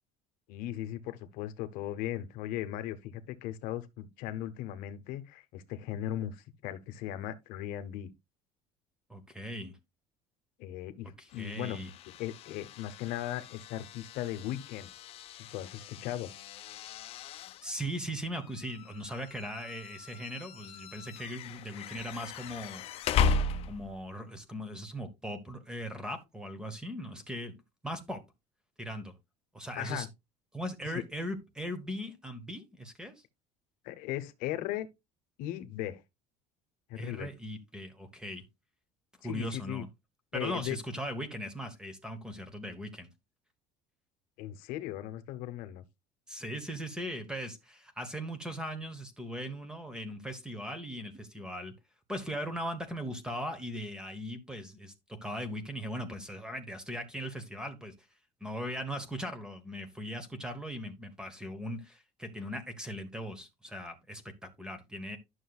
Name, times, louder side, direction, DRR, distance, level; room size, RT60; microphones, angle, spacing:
voice 1, 0.5-8.1 10.6-11.8 12.2-14.9 15.5-16.3 29.8-30.1 33.8-34.9 35.4-36.0 36.9-37.3 39.2-39.8 40.3-40.8 44.4-45.8, left 13 dB, 70° left, 0.9 m, -37 dB
voice 2, 9.1-9.8 11.2-11.9 17.6-22.8 23.7-27.6 27.8-28.2 28.8-29.1 29.5-30.1 30.5-33.2 36.9-38.4 39.2-39.9 40.3-43.1 46.3-51.7 52.1-57.9 58.4-65.2, equal, 5° right, 1.0 m, -39 dB
sound 1, 11.3-24.1, left 5 dB, 40° left, 0.6 m, -37 dB
11.5 x 6.3 x 2.3 m
cardioid pair, 165°, 15 cm